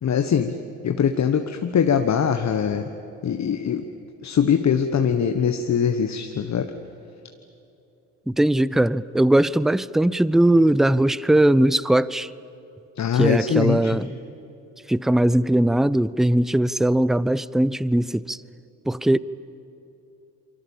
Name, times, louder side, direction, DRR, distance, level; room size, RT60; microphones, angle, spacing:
voice 1, 0.0-0.5 0.8-2.9 3.2-3.8 4.2-6.7 13.0-14.0, left 7 dB, 45° left, 1.4 m, -22 dB
voice 2, 8.3-12.3 13.1-14.1 14.9-18.4 18.9-19.2, right 1 dB, ahead, 0.5 m, -19 dB
28.0 x 24.0 x 7.3 m
hypercardioid pair, 55°, 40 cm